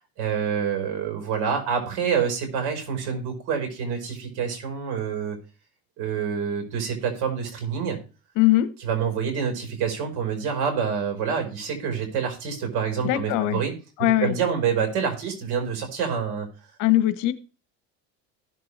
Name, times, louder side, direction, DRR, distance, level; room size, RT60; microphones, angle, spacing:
voice 1, 0.2-5.4 6.0-8.0 8.8-13.7 14.2-16.5, right 7 dB, 70° right, 4 dB, 4.6 m, -27 dB
voice 2, 8.4-8.7 13.0-13.6 14.0-14.3 16.8-17.3, left 15 dB, 70° left, 13 dB, 1.1 m, -20 dB
16.5 x 6.8 x 3.3 m, 0.33 s
cardioid pair, 125°, 32 cm